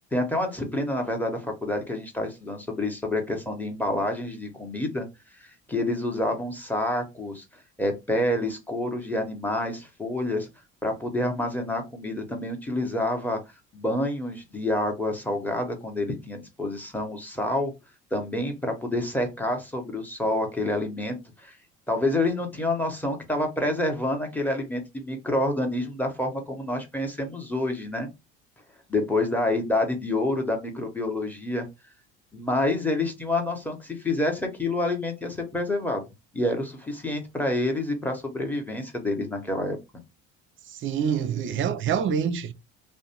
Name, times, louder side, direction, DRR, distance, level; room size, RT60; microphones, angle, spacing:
voice 1, 0.1-5.1 5.4-7.4 7.8-10.5 10.8-13.4 13.7-17.7 18.1-21.6 21.9-28.1 28.9-31.7 32.3-36.0 36.3-39.8, left 1 dB, 5° left, 0.8 m, -28 dB
voice 2, 40.7-42.5, right 7 dB, 40° right, 0.5 m, -26 dB
2.5 x 2.1 x 2.8 m
supercardioid pair, 80°, 31 cm